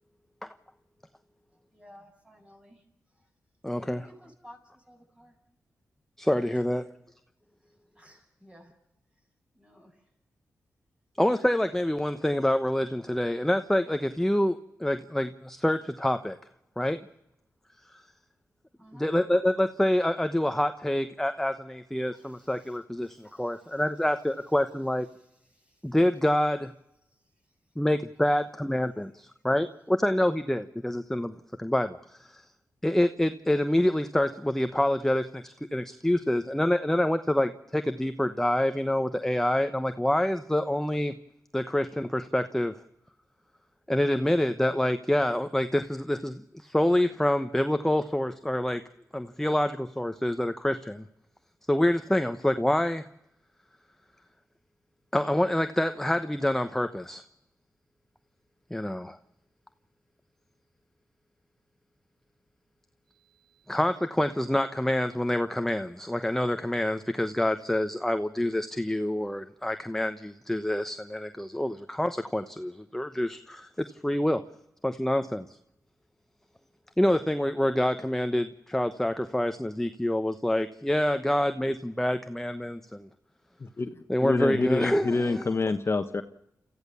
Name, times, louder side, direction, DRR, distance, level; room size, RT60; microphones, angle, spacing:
voice 1, 1.5-3.3 3.9-5.4 6.5-7.1 7.6-8.7 9.5-10.1 18.8-19.1 22.1-22.8 23.0-24.6 25.1-26.0 27.1-27.8, equal, 20° right, 2 dB, 7.8 m, -57 dB
voice 2, 3.6-4.1 6.2-6.8 11.2-16.4 16.8-17.0 17.9-18.0 18.9-25.1 25.8-26.7 27.8-32.4 32.8-41.1 41.5-42.7 43.9-48.8 49.1-51.0 51.7-53.1 55.1-57.2 58.7-59.2 63.7-74.4 74.8-75.5 77.0-83.1 84.1-85.4, left 1 dB, 5° left, 9 dB, 1.1 m, -27 dB
voice 3, 83.6-86.2, left 3 dB, 45° left, 8 dB, 1.2 m, -27 dB
30.0 x 14.5 x 7.1 m, 0.85 s
cardioid pair, 55°, 6 cm